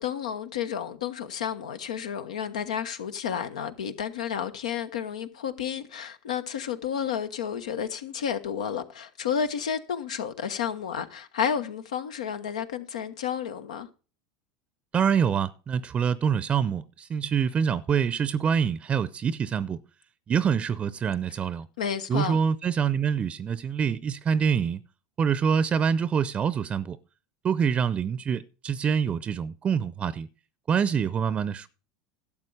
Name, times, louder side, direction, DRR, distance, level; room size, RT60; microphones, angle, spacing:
voice 1, 0.0-13.9 21.8-22.4, left 8 dB, 85° left, 1.2 m, -31 dB
voice 2, 14.9-19.8 20.3-21.7 22.1-24.8 25.2-27.0 27.4-30.3 30.7-31.7, right 7 dB, 30° right, 0.6 m, -25 dB
12.0 x 7.4 x 4.9 m
hypercardioid pair, 95°, 4 cm